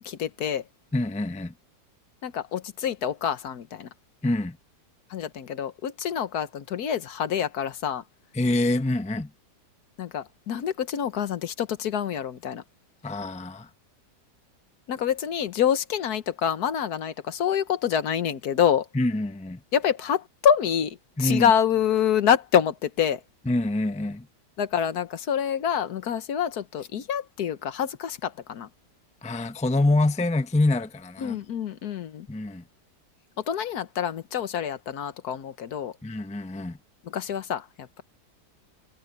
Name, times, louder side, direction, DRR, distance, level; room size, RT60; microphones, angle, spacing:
voice 1, 0.0-0.6 2.2-3.9 5.1-8.0 10.0-12.6 14.9-18.9 19.7-23.2 24.6-28.7 31.2-32.3 33.4-35.9 37.0-38.0, left 8 dB, 65° left, 1.5 m, -26 dB
voice 2, 0.9-1.5 4.2-4.6 8.3-9.3 13.0-13.7 18.9-19.6 21.2-21.5 23.5-24.3 29.2-31.4 32.3-32.6 36.0-36.8, left 2 dB, 5° left, 0.6 m, -25 dB
omnidirectional pair, 1.8 m